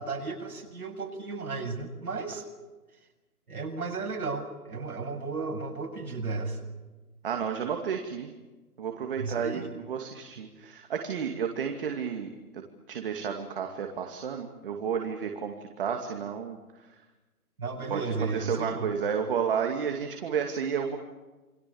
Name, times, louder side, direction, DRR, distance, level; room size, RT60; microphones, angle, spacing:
voice 1, 0.0-2.4 3.5-6.6 9.2-9.7 17.6-18.9, right 4 dB, 70° right, 2 dB, 7.7 m, -34 dB
voice 2, 7.2-8.3 8.8-12.6 12.9-16.6 17.9-21.0, right 7 dB, 35° right, 3 dB, 2.5 m, -31 dB
28.5 x 25.0 x 7.2 m, 1.2 s
hypercardioid pair, 165°, 46 cm